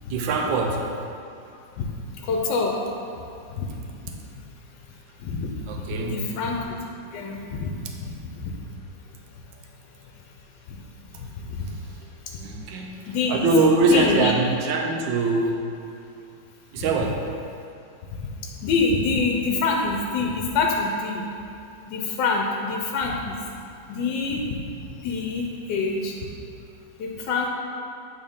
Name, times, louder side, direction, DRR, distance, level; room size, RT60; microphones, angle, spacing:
voice 1, 0.1-0.8 5.7-6.3 12.4-13.0 13.3-15.7 16.7-17.2, right 2 dB, 85° right, 1 dB, 1.3 m, -22 dB
voice 2, 2.2-2.7 3.5-3.7 5.2-5.6 6.0-6.8 7.1-7.7 8.0-8.5 11.2-11.7 13.1-13.5 13.9-14.3 17.0-17.1 18.4-21.2 21.9-23.3 23.9-24.6 24.9-26.1 27.0-27.5, left 4 dB, 80° left, 0 dB, 1.2 m, -26 dB
8.3 x 3.7 x 3.5 m, 2.6 s
omnidirectional pair, 2.0 m